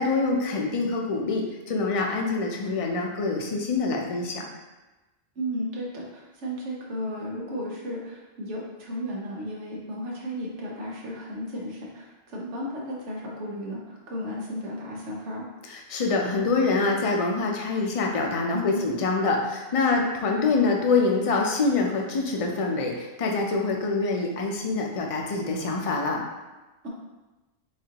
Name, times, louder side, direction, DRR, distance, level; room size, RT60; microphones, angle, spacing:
voice 1, 0.0-4.4 15.7-26.2, left 3 dB, 40° left, 1 dB, 0.5 m, -25 dB
voice 2, 5.4-15.5 18.5-18.9 19.8-20.1, equal, 90° right, -3 dB, 1.3 m, -34 dB
7.3 x 2.5 x 2.9 m, 1.1 s
omnidirectional pair, 1.2 m